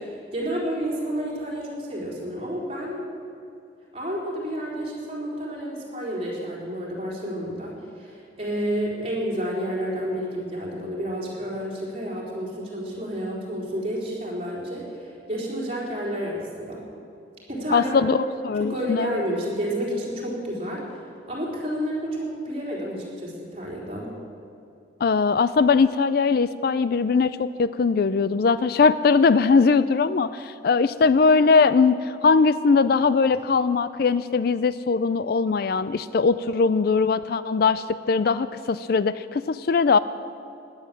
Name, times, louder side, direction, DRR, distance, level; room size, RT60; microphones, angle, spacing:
voice 1, 0.0-3.0 3.9-16.9 17.5-18.1 18.5-21.0 21.3-24.1, equal, 30° right, -5 dB, 4.1 m, -30 dB
voice 2, 17.7-19.1 25.0-40.0, left 4 dB, 50° left, 15 dB, 0.4 m, -20 dB
16.5 x 10.5 x 7.6 m, 2.6 s
head